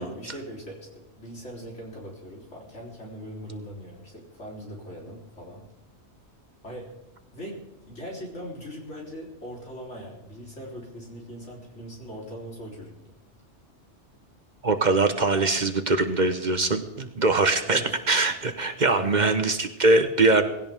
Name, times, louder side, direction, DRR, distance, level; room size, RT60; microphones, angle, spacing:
voice 1, 0.0-5.6 6.6-6.9 7.3-13.1 17.6-17.9 18.9-19.3, equal, 90° left, -3 dB, 4.2 m, -40 dB
voice 2, 14.6-17.8 18.1-20.4, right 3 dB, 40° right, 8 dB, 1.1 m, -22 dB
19.0 x 16.5 x 3.6 m, 0.90 s
omnidirectional pair, 1.2 m